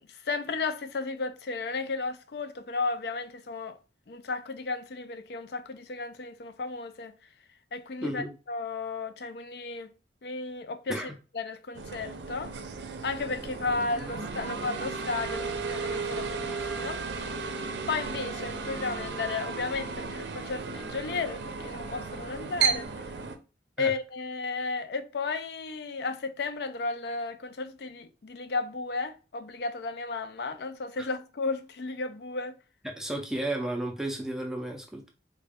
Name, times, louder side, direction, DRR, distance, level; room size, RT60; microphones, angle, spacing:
voice 1, 0.0-3.8 4.1-7.1 7.7-9.9 10.2-11.0 11.3-12.5 13.0-17.0 17.9-22.9 23.8-32.6, left 4 dB, 65° left, 0.4 m, -34 dB
voice 2, 8.0-8.3 10.9-11.1 23.8-23.9 31.0-31.1 32.8-35.1, right 1 dB, 5° right, 0.4 m, -33 dB
sound 1, 11.7-23.4, right 5 dB, 80° right, 0.5 m, -34 dB
3.8 x 2.2 x 3.4 m
head